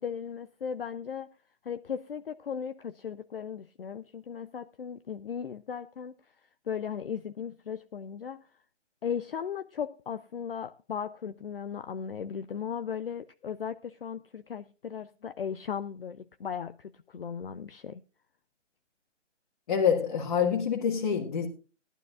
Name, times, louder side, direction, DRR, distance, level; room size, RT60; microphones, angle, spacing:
voice 1, 0.0-1.3 1.6-6.1 6.7-8.5 9.0-18.0, left 7 dB, 50° left, 0.6 m, -37 dB
voice 2, 19.7-21.5, left 7 dB, 30° left, 1.6 m, -26 dB
19.0 x 12.0 x 2.4 m
figure-of-eight pair, 155°, 38 cm